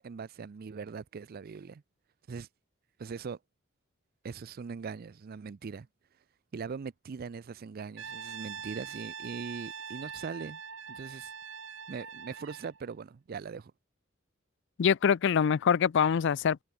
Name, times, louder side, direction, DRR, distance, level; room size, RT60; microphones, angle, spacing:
voice 1, 0.0-1.8 2.3-2.5 3.0-3.4 4.2-5.9 6.5-10.6 10.9-11.3 11.9-13.7, right 5 dB, 50° right, 0.4 m, -41 dB
Brass instrument, 8.0-12.8, right 6 dB, 70° right, 3.2 m, -43 dB
voice 2, 14.8-16.6, left 7 dB, 60° left, 0.4 m, -24 dB
head